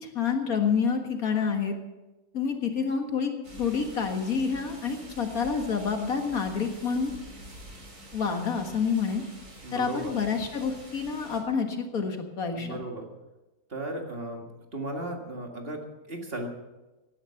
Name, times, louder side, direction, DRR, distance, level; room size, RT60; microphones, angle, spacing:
voice 1, 0.0-1.8 2.3-3.3 3.6-7.1 8.1-9.2 9.7-12.8, left 6 dB, 70° left, 4 dB, 2.1 m, -28 dB
sound 1, 3.4-11.4, right 1 dB, 85° right, 3.8 m, -47 dB
voice 2, 9.6-10.2 12.5-13.0 13.7-14.5 14.7-16.5, right 1 dB, 40° right, 2 dB, 2.1 m, -35 dB
16.5 x 11.0 x 5.8 m, 1.1 s
omnidirectional pair, 1.6 m